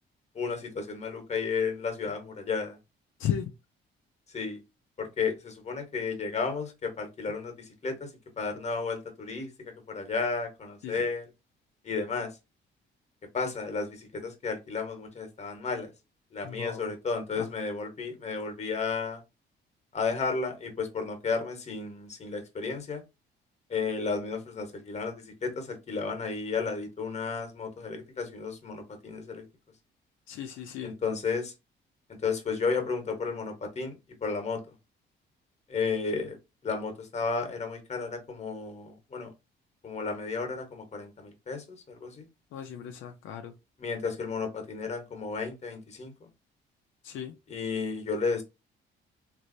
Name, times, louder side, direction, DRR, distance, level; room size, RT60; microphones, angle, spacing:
voice 1, 0.3-2.8 4.3-4.6 5.0-8.1 8.4-9.5 9.9-11.3 11.8-12.3 13.3-15.9 16.3-19.2 19.9-23.0 23.7-29.4 30.8-31.5 32.2-34.6 35.7-36.4 36.6-39.3 39.8-42.3 43.8-46.1 47.5-48.4, left 4 dB, 35° left, 1.1 m, -33 dB
voice 2, 3.2-3.5 10.8-11.1 16.4-16.9 17.4-17.5 30.3-31.0 42.5-43.5 47.0-47.4, left 9 dB, 85° left, 0.5 m, -35 dB
3.1 x 2.6 x 2.6 m
cardioid pair, 90°, 20 cm